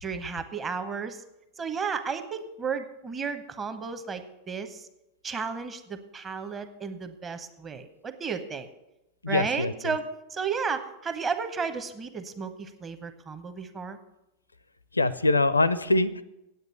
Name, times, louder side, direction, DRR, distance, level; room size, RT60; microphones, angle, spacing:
voice 1, 0.0-1.2 1.6-4.8 5.2-8.7 9.3-10.0 10.3-14.0, right 5 dB, 20° right, 9 dB, 0.9 m, -33 dB
voice 2, 9.2-9.7 14.9-16.2, left 2 dB, 80° left, 17 dB, 0.5 m, -23 dB
9.1 x 8.2 x 6.8 m, 0.92 s
figure-of-eight pair, 90°, 0 cm